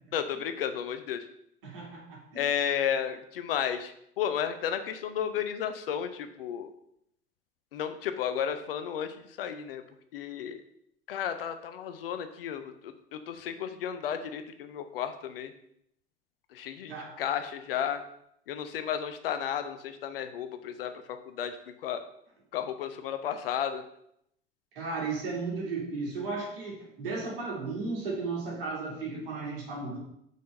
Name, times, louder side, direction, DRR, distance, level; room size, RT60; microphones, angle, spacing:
voice 1, 0.1-1.3 2.3-6.7 7.7-9.8 10.1-10.6 11.1-15.5 16.5-18.0 18.5-22.0 22.5-23.8, left 8 dB, 70° left, 9 dB, 0.9 m, -33 dB
voice 2, 1.6-2.4 16.9-17.2 24.7-30.0, right 3 dB, 65° right, -3 dB, 3.0 m, -35 dB
6.1 x 5.2 x 6.6 m, 0.74 s
figure-of-eight pair, 65°, 30 cm